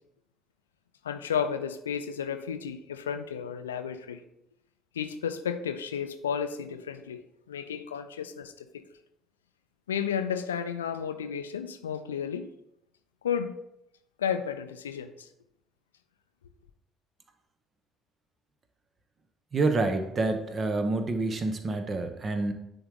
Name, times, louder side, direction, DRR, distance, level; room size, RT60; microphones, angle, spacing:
voice 1, 1.0-4.2 4.9-7.2 7.5-8.7 9.9-12.5 13.2-13.5 14.2-15.3, left 7 dB, 75° left, 9 dB, 0.4 m, -32 dB
voice 2, 19.5-22.5, right 3 dB, 35° right, 7 dB, 0.9 m, -28 dB
10.0 x 3.9 x 3.6 m, 0.81 s
figure-of-eight pair, 50°, 0 cm